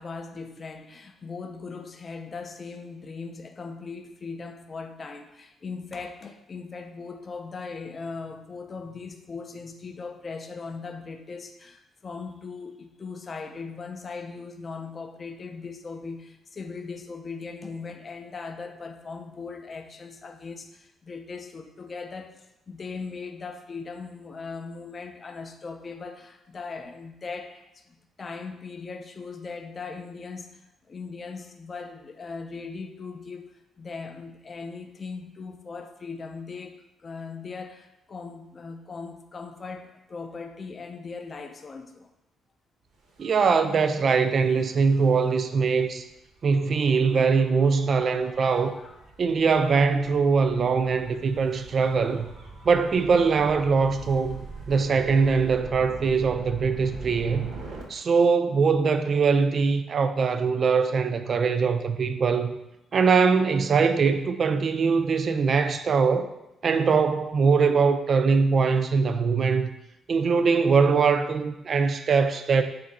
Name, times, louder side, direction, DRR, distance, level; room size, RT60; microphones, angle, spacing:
voice 1, 0.0-30.6 30.9-42.1 47.7-49.1 65.0-65.1, left 4 dB, 40° left, 6 dB, 0.4 m, -39 dB
Gull seagull / Waves surf / Siren, 43.1-57.8, right 3 dB, 75° right, 0.7 m, -44 dB
voice 2, 43.2-46.0 46.4-48.8 49.2-52.3 52.7-57.5 57.9-62.5 62.9-66.3 66.6-69.7 70.1-72.6, right 5 dB, 50° right, 9 dB, 0.3 m, -22 dB
3.5 x 2.5 x 4.0 m, 0.88 s
cardioid pair, 90°, 0 cm